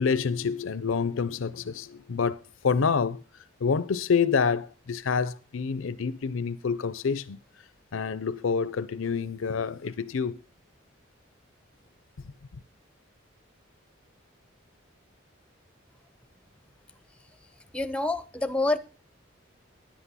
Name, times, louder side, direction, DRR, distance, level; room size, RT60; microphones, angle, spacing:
voice 1, 0.0-3.2 3.6-7.4 7.9-10.4, left 5 dB, 85° left, 0.5 m, -27 dB
voice 2, 17.7-18.8, left 2 dB, 5° left, 0.5 m, -27 dB
10.5 x 8.2 x 5.5 m
head